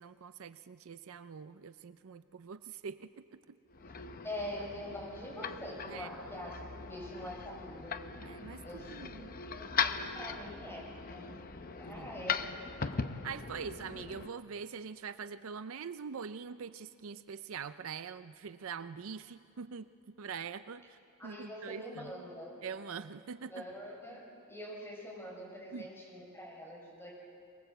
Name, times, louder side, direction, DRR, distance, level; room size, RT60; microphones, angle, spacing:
voice 1, 0.0-3.2 5.9-6.1 8.2-9.3 11.8-12.1 13.2-19.9 20.2-22.1 22.6-23.6 25.7-25.9, right 6 dB, 75° right, 12 dB, 0.5 m, -44 dB
sound 1, 3.7-14.3, left 6 dB, 40° left, 0.8 m, -39 dB
voice 2, 4.2-8.0 8.6-11.3 11.8-12.7 21.2-22.5 23.5-27.1, left 1 dB, 10° left, -3 dB, 6.0 m, -44 dB
22.5 x 20.5 x 7.9 m, 2.5 s
head